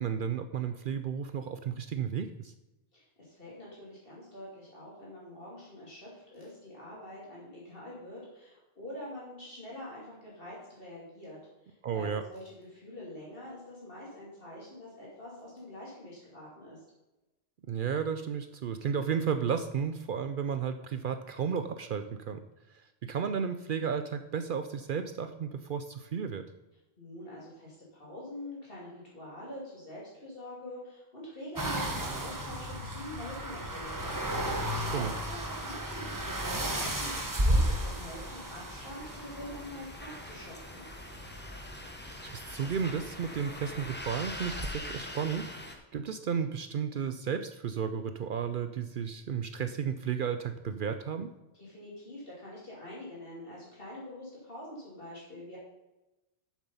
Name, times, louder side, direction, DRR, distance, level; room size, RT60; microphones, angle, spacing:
voice 1, 0.0-2.5 11.8-12.2 17.7-22.4 23.0-26.4 34.8-35.1 42.3-51.3, right 7 dB, 60° right, 9 dB, 0.6 m, -33 dB
voice 2, 2.9-16.8 27.0-40.8 51.5-55.6, left 1 dB, 55° left, -6 dB, 2.7 m, -45 dB
sound 1, 31.6-44.7, right 1 dB, 20° right, 0.9 m, -34 dB
sound 2, 34.0-45.8, left 1 dB, 10° left, 1.0 m, -45 dB
7.5 x 7.3 x 5.5 m, 0.99 s
omnidirectional pair, 1.1 m